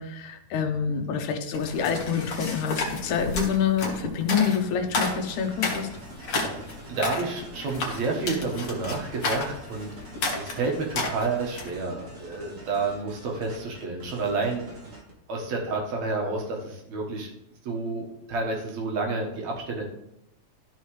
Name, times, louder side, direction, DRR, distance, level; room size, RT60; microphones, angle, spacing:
voice 1, 0.0-5.9, left 7 dB, 75° left, 5 dB, 2.2 m, -27 dB
sound 1, 1.5-11.8, left 3 dB, 50° left, 2.1 m, -32 dB
sound 2, 5.3-15.1, right 1 dB, 35° right, 1.4 m, -45 dB
voice 2, 6.9-9.9 10.4-14.7 15.3-17.3 17.6-19.8, right 3 dB, 65° right, 0 dB, 2.6 m, -30 dB
13.5 x 5.5 x 3.2 m, 0.85 s
omnidirectional pair, 3.5 m